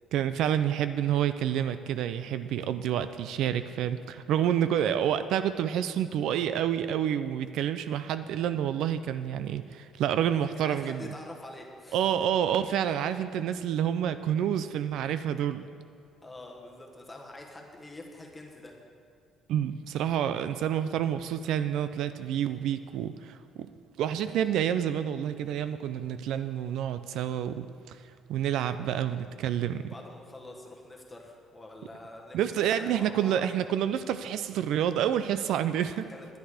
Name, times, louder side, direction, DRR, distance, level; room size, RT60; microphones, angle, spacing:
voice 1, 0.1-11.1 11.9-15.6 19.5-23.7 24.0-28.0 28.3-29.8 32.3-36.0, right 10 dB, 70° right, 11 dB, 0.4 m, -28 dB
voice 2, 10.5-12.0 16.2-18.7 29.0-29.1 29.8-33.4 36.1-36.3, left 2 dB, 10° left, 0 dB, 1.3 m, -46 dB
10.5 x 10.5 x 4.9 m, 2.4 s
cardioid pair, 160°, 0 cm